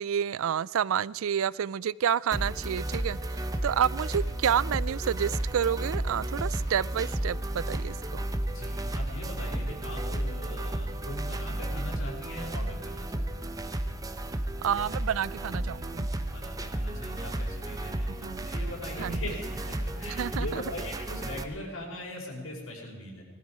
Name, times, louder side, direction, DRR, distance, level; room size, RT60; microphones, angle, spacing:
voice 1, 0.0-8.3 14.6-16.1 18.2-18.5 19.0-19.2 20.1-20.6, right 8 dB, 75° right, 22 dB, 0.4 m, -29 dB
sound 1, 2.3-21.4, right 1 dB, 15° right, 0.8 m, -33 dB
voice 2, 8.5-13.5 16.3-23.2, left 1 dB, 80° left, -1 dB, 5.2 m, -41 dB
19.5 x 14.0 x 4.8 m, 1.5 s
head